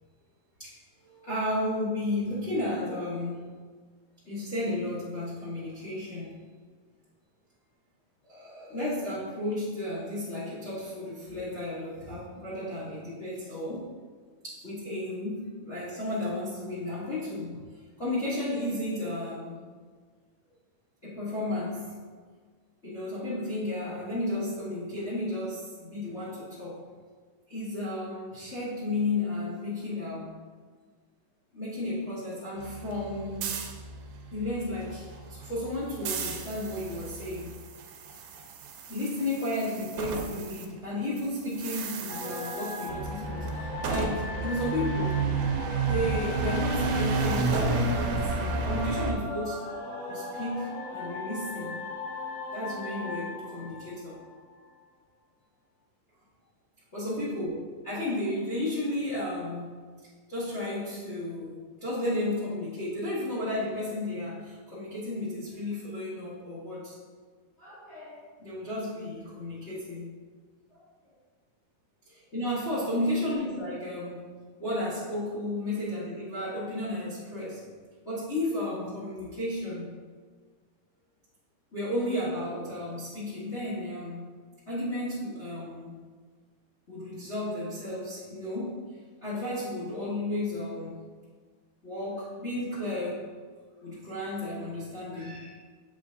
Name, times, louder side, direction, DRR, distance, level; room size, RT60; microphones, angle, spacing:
voice 1, 1.0-3.6 4.2-6.3 8.2-13.9 14.4-17.6 18.0-19.6 21.0-21.9 22.8-26.9 27.5-30.3 31.5-33.5 34.3-37.6 38.9-45.2 45.9-49.7 50.1-51.8 52.5-54.2 56.9-59.9 60.3-67.0 67.6-70.1 72.0-74.3 74.6-77.6 78.0-80.0 81.7-84.4 84.7-86.0 86.9-88.9 89.2-91.0 91.8-93.3 93.8-95.6, left 1 dB, 90° left, -10 dB, 0.6 m, -33 dB
sound 1, 32.6-40.7 40.9-49.1, right 3 dB, 80° right, 2.4 m, -32 dB
sound 2, 42.1-54.7, left 1 dB, 35° left, 0.8 m, -38 dB
8.0 x 5.2 x 2.6 m, 1.5 s
omnidirectional pair, 4.0 m